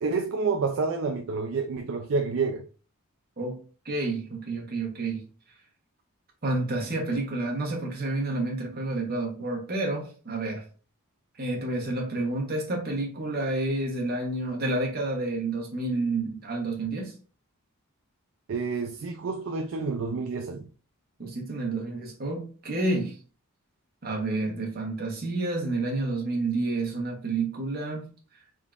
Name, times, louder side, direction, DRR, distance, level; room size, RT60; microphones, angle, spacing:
voice 1, 0.0-2.6 18.5-20.7, right 4 dB, 60° right, 0.4 m, -29 dB
voice 2, 3.8-5.2 6.4-10.6 11.4-17.1 21.2-23.2 24.0-28.1, right 2 dB, 45° right, 1.1 m, -29 dB
3.7 x 3.5 x 2.4 m
head